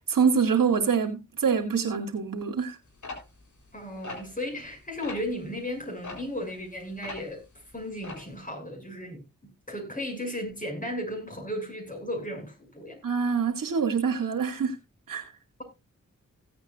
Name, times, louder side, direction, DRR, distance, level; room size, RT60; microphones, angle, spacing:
voice 1, 0.1-2.8 13.0-14.8 15.1-15.3, right 6 dB, 75° right, 2.5 m, -25 dB
sound 1, 3.0-4.7 5.0-5.3 6.0-7.4 7.7-8.3, left 3 dB, 60° left, 3.9 m, -41 dB
voice 2, 3.7-7.4 7.7-9.2 9.7-13.0, left 1 dB, 25° left, 6.9 m, -35 dB
16.5 x 8.7 x 2.5 m
cardioid pair, 45°, 33 cm